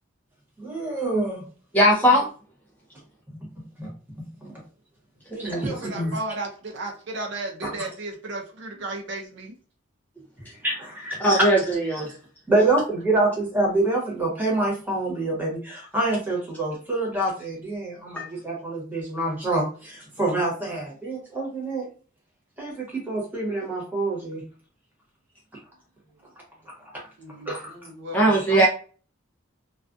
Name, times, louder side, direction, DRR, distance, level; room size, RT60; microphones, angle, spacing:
voice 1, 0.6-1.4 3.8-3.9 4.4-4.5 5.3-6.1 7.6-7.7 10.6-11.2 12.5-21.9 22.6-24.4 27.5-27.7, right 2 dB, 10° right, 1.0 m, -26 dB
voice 2, 1.7-2.3 11.2-12.1 18.2-18.3 28.1-28.7, right 1 dB, 10° left, 0.4 m, -19 dB
voice 3, 5.5-9.5 27.2-28.7, right 2 dB, 60° right, 0.5 m, -34 dB
2.3 x 2.3 x 2.4 m
head